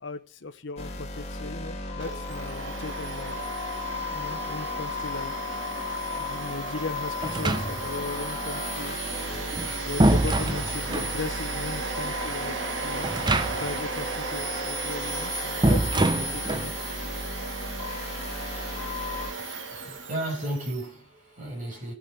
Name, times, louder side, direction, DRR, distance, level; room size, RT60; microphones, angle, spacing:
voice 1, 0.0-3.4 4.0-5.3 6.2-9.0 9.8-12.6 12.8-13.1 13.6-16.7, left 3 dB, 70° left, 1.0 m, -37 dB
sound 1, 0.8-19.3, left 3 dB, 35° left, 2.3 m, -35 dB
Domestic sounds home sounds, 2.0-20.9, right 3 dB, 80° right, 1.8 m, -35 dB
sound 2, 7.2-8.1 9.3-11.2 13.0-13.8 14.1-14.2 15.6-16.7, right 1 dB, 25° right, 0.7 m, -25 dB
voice 2, 19.4-21.9, right 1 dB, 40° right, 5.9 m, -34 dB
17.5 x 7.2 x 5.1 m
head